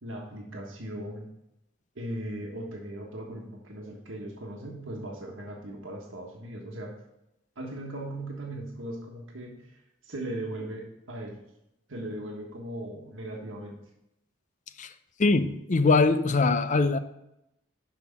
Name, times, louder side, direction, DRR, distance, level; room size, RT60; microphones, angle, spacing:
voice 1, 0.0-1.3 1.9-6.9 7.6-11.4 11.9-13.8, right 1 dB, 85° right, 1.4 m, -38 dB
voice 2, 15.2-17.0, left 3 dB, 40° left, 0.5 m, -22 dB
6.1 x 5.7 x 7.1 m
head